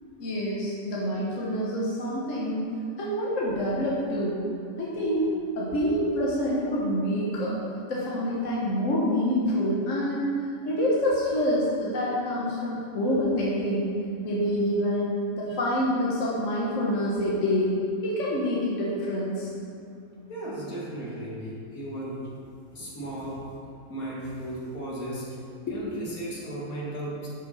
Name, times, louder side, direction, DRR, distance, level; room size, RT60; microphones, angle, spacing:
voice 1, 0.2-2.6 3.0-4.4 4.8-5.3 5.6-7.5 7.9-13.9 14.2-17.7 18.0-19.5 25.7-25.8, equal, 60° left, -6 dB, 1.6 m, -27 dB
voice 2, 20.3-22.3 22.7-23.5 23.9-25.4 25.7-27.3, right 1 dB, 75° left, -6 dB, 2.4 m, -35 dB
12.0 x 5.6 x 4.2 m, 2.4 s
omnidirectional pair, 1.5 m